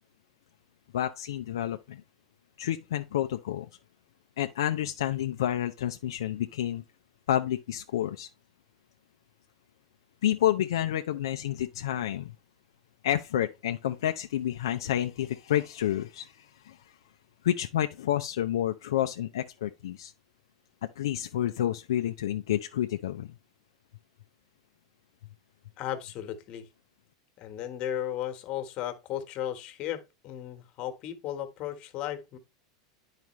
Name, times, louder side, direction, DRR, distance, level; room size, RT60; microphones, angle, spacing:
voice 1, 0.9-2.0 2.6-3.7 4.4-6.8 7.3-8.3 10.2-12.3 13.0-16.8 17.4-20.1 21.0-23.3, left 11 dB, 80° left, 0.4 m, -29 dB
voice 2, 25.8-26.7 27.4-32.4, left 11 dB, 45° left, 1.3 m, -35 dB
9.3 x 4.9 x 3.1 m
hypercardioid pair, 105°, 2 cm